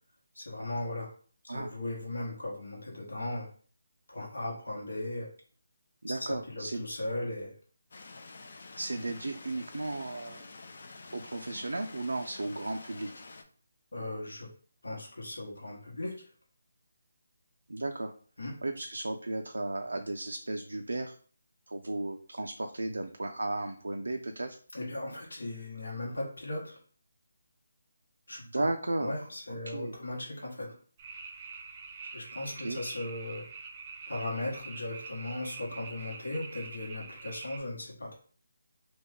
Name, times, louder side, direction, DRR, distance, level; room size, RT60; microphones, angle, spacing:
voice 1, 0.3-1.1 1.4-3.5 4.1-5.3 6.1-7.5 13.9-14.5 14.8-16.3 18.4-18.5 24.7-26.8 28.3-28.7 29.0-30.8 32.1-33.5 34.1-38.1, left 1 dB, 80° left, -2 dB, 1.0 m, -37 dB
voice 2, 6.0-6.8 8.8-10.4 11.1-13.1 17.7-18.1 18.6-21.1 21.7-24.6 28.5-29.1 29.5-29.9 32.6-32.8, right 2 dB, 90° right, 4 dB, 0.3 m, -34 dB
sound 1, 7.9-13.4, left 3 dB, 60° left, 0.5 m, -48 dB
sound 2, 31.0-37.6, right 4 dB, 30° right, 0.5 m, -45 dB
2.9 x 2.2 x 3.5 m, 0.43 s
figure-of-eight pair, 160°, 0 cm